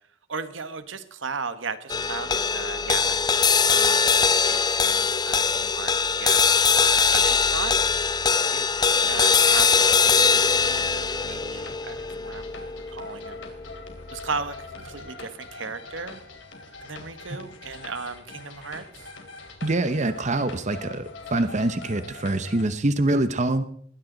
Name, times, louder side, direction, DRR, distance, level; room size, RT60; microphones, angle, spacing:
voice 1, 0.3-3.2 3.7-7.7 8.5-12.6 12.9-13.4 14.1-16.2 16.8-19.1, right 4 dB, 80° right, 11 dB, 1.4 m, -36 dB
sound 1, 1.9-14.4, left 5 dB, 20° left, 0.5 m, -22 dB
sound 2, 8.9-22.6, left 3 dB, 75° left, 3.3 m, -43 dB
voice 2, 19.6-23.7, right 2 dB, 40° right, 10 dB, 0.9 m, -25 dB
21.0 x 16.5 x 4.0 m, 0.66 s
head